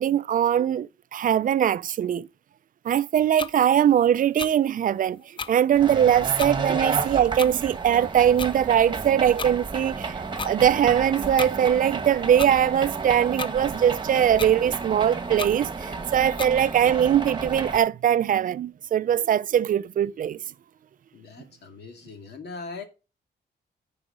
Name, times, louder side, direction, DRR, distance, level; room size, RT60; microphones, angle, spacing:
voice 1, 0.0-2.3 2.8-5.2 5.5-20.4, right 10 dB, 50° right, 0.4 m, -21 dB
sound 1, 3.4-3.5 4.4-4.5 5.4-5.5 6.4-6.5 7.4-7.5 8.4-8.5 9.4-9.5 10.4-10.5 11.4-11.5 12.4-12.5 13.4-13.5 14.4-14.5 15.4-15.5 16.4-16.5, left 5 dB, 30° left, 0.5 m, -32 dB
sound 2, 5.7-17.8, right 4 dB, 25° right, 1.3 m, -32 dB
voice 2, 21.1-22.8, left 4 dB, 70° left, 2.3 m, -40 dB
9.9 x 4.9 x 4.9 m
wide cardioid pair, 125°, 18 cm